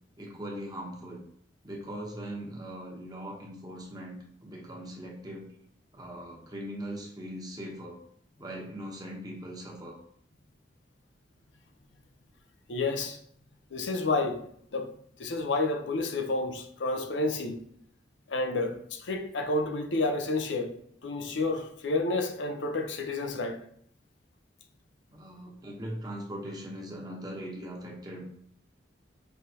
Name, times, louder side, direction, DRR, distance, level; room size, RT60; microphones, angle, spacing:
voice 1, 0.2-1.3 1.6-5.5 5.9-8.0 8.4-10.0 25.1-28.3, equal, 20° right, 1.0 m, -40 dB
voice 2, 12.7-13.2 13.7-14.5 14.7-14.9 15.2-17.6 18.3-20.8 21.0-23.6, left 2 dB, 85° left, 0.6 m, -30 dB
5.7 x 3.2 x 2.8 m
head